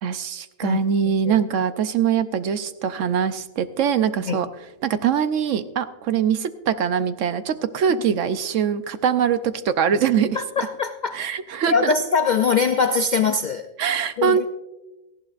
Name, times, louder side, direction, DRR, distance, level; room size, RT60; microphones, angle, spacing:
voice 1, 0.0-4.5 4.8-10.7 11.1-11.9 13.8-14.5, right 8 dB, 65° right, 11 dB, 1.0 m, -23 dB
voice 2, 10.3-11.2 11.7-13.7 14.2-14.5, left 5 dB, 80° left, 8 dB, 0.4 m, -22 dB
18.0 x 14.5 x 2.5 m, 1.0 s
omnidirectional pair, 1.5 m